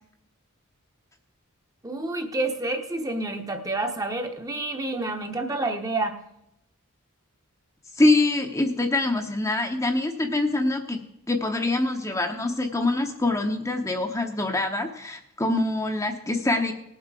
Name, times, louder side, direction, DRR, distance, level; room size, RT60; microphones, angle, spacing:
voice 1, 1.8-6.2, right 2 dB, 15° right, 5 dB, 0.9 m, -29 dB
voice 2, 7.9-16.7, left 2 dB, 15° left, 4 dB, 0.8 m, -24 dB
18.5 x 7.6 x 4.8 m, 0.80 s
head